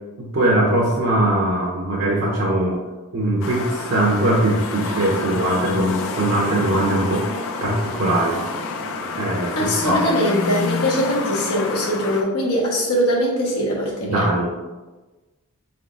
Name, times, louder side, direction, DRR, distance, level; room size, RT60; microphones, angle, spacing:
voice 1, 0.2-2.8 3.1-7.3 7.6-8.4 9.2-10.0 14.0-14.5, right 1 dB, 60° right, -3 dB, 0.7 m, -21 dB
sound 1, 3.4-12.2, left 3 dB, 65° left, 0.4 m, -28 dB
voice 2, 9.6-14.3, equal, 90° left, -3 dB, 1.2 m, -21 dB
4.3 x 3.6 x 2.5 m, 1.2 s
head